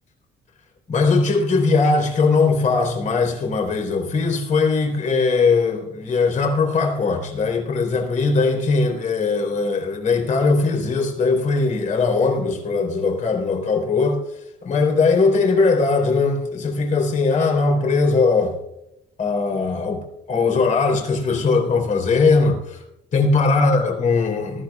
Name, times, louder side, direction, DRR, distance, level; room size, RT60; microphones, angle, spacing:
voice 1, 0.9-14.2 14.6-18.6 19.2-22.8 23.1-24.6, left 4 dB, 50° left, 3.6 m, -20 dB
19.0 x 14.0 x 2.4 m
cardioid pair, 110°, 17 cm